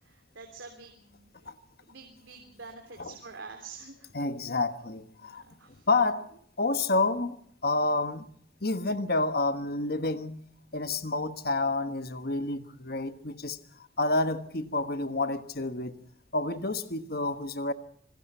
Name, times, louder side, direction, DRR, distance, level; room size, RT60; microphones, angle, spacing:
voice 1, 0.0-1.3 1.8-4.1 5.2-5.9, right 4 dB, 85° right, 4 dB, 3.3 m, -47 dB
voice 2, 4.1-5.4 5.9-6.3 6.6-8.3 8.6-10.5 10.7-13.6 14.0-16.0 16.3-17.7, left 2 dB, 55° left, 10 dB, 1.4 m, -29 dB
26.5 x 19.5 x 5.6 m, 0.63 s
head